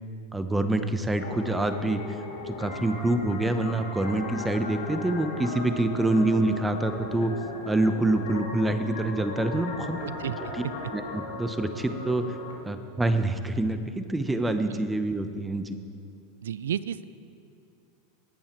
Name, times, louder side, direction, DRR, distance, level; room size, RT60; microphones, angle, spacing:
voice 1, 0.3-2.0 2.4-7.3 7.7-10.0 10.5-10.6 10.9-12.2 12.6-15.8, right 2 dB, 10° right, 9 dB, 0.9 m, -26 dB
sound 1, 1.2-12.5, left 3 dB, 80° left, 2.4 m, -37 dB
voice 2, 10.0-10.4 16.4-17.0, right 9 dB, 80° right, 17 dB, 0.4 m, -31 dB
19.0 x 8.7 x 4.5 m, 2.4 s
hypercardioid pair, 100°, 0 cm